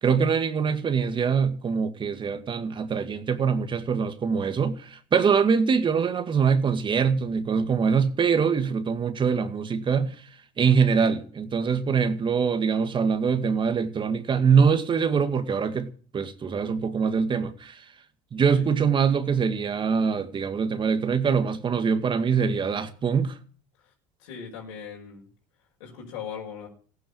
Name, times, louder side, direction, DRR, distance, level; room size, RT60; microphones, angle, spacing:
voice 1, 0.0-10.3 10.6-17.9 18.3-23.4, right 6 dB, 30° right, 2.1 m, -24 dB
voice 2, 24.2-25.3 25.8-26.7, left 7 dB, 85° left, 5.7 m, -39 dB
15.5 x 9.7 x 8.7 m
supercardioid pair, 95°, 15 cm